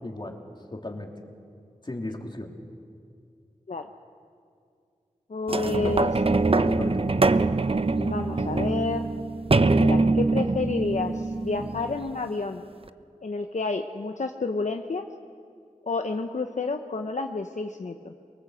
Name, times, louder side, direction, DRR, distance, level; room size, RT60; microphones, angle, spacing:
voice 1, 0.0-0.4 0.7-1.1 1.8-2.5 5.8-6.1 6.5-7.1, left 2 dB, 35° left, 2 dB, 3.0 m, -35 dB
voice 2, 5.3-6.1 6.5-6.6 7.9-9.1 9.7-12.6 13.2-15.0 15.9-18.2, left 3 dB, 60° left, 5 dB, 1.0 m, -30 dB
sound 1, 5.5-12.2 12.9-13.0, right 3 dB, 45° right, 0.8 m, -24 dB
23.0 x 18.5 x 8.0 m, 2.3 s
cardioid pair, 40°, 14 cm